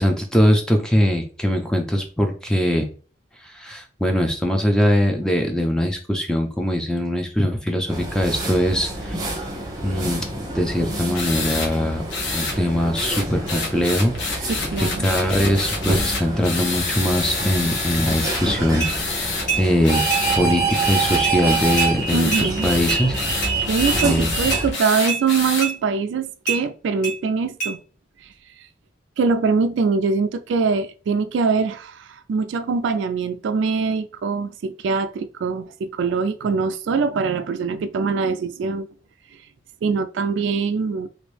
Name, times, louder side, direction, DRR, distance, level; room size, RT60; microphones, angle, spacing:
voice 1, 0.0-2.9 3.4-9.2 9.8-10.3 10.5-12.0 12.3-14.5 15.0-19.3 19.6-20.0 20.3-23.2 24.0-24.3, equal, 5° left, 0.4 m, -21 dB
sound 1, 7.9-24.7, right 3 dB, 20° right, 0.8 m, -27 dB
sound 2, 11.1-11.7 12.1-12.6 13.0-18.4 18.8-19.5 19.8-20.4 20.7-25.7, left 3 dB, 75° left, 0.9 m, -27 dB
voice 2, 14.5-15.1 22.1-22.7 23.7-27.8 29.2-38.9 39.8-41.1, right 5 dB, 75° right, 0.3 m, -23 dB
sound 3, 18.8-18.9 19.5-19.6 20.1-20.2 20.7-20.8 21.2-21.4 21.8-21.9 22.3-22.5 22.9-23.0 23.4-23.5 24.0-24.1 24.5-24.6 25.1-25.2 25.6-25.7 26.5-26.6 27.0-27.2 27.6-27.7, right 5 dB, 40° left, 1.6 m, -25 dB
3.0 x 2.6 x 3.2 m
head